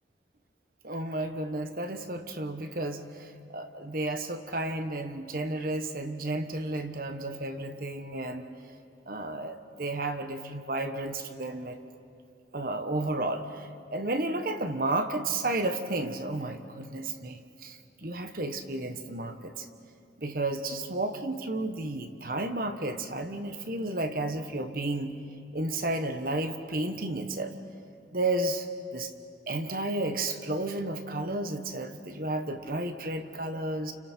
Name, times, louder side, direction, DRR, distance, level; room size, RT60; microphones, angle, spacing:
voice 1, 0.8-8.5 9.0-11.8 12.5-19.7 20.2-25.1 25.5-27.5 28.1-28.7 28.9-29.1 29.5-33.9, right 2 dB, 55° right, 7 dB, 1.3 m, -32 dB
30.0 x 30.0 x 4.5 m, 2.5 s
head